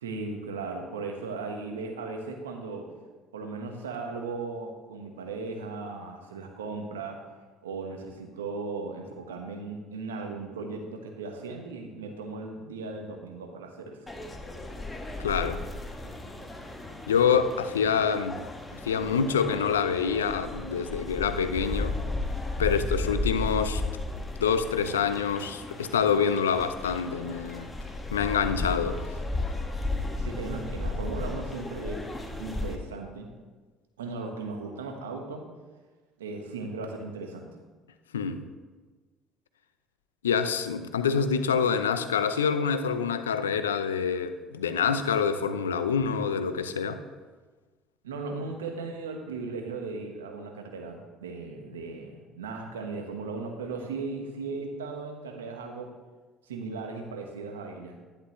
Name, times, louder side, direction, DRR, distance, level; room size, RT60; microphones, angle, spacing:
voice 1, 0.0-2.9 3.3-7.2 7.6-14.0 30.2-33.3 34.0-35.5 36.2-37.6 48.0-55.9 56.5-58.0, right 3 dB, 85° right, 3 dB, 1.3 m, -37 dB
sound 1, 14.1-32.8, left 2 dB, 20° left, 1.7 m, -34 dB
voice 2, 15.2-15.6 17.1-18.4 18.7-22.0 22.6-23.8 24.4-27.7 28.1-29.0 38.1-38.4 40.2-47.0, left 6 dB, 90° left, 11 dB, 0.6 m, -26 dB
11.0 x 10.0 x 3.2 m, 1.3 s
hypercardioid pair, 60°, 0 cm